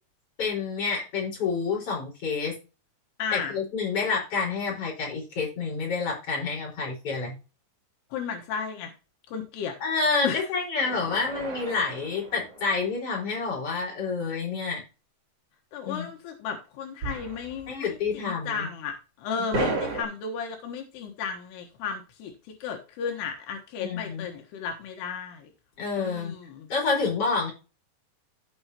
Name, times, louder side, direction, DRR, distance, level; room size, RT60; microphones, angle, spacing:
voice 1, 0.4-2.5 3.3-7.4 9.8-14.8 15.8-16.1 17.7-18.7 19.6-19.7 23.8-24.3 25.8-26.4 26.7-27.5, left 4 dB, 35° left, -2 dB, 5.6 m, -28 dB
voice 2, 3.2-3.5 8.1-8.9 9.3-9.8 10.2-10.4 15.7-22.3 22.6-25.5 26.0-26.7, left 6 dB, 85° left, 2 dB, 3.4 m, -34 dB
sound 1, 10.8-13.3 17.0-17.8 18.0-18.1 19.5-20.0, right 3 dB, 40° right, 3.4 m, -33 dB
15.0 x 5.8 x 2.9 m, 0.31 s
omnidirectional pair, 4.6 m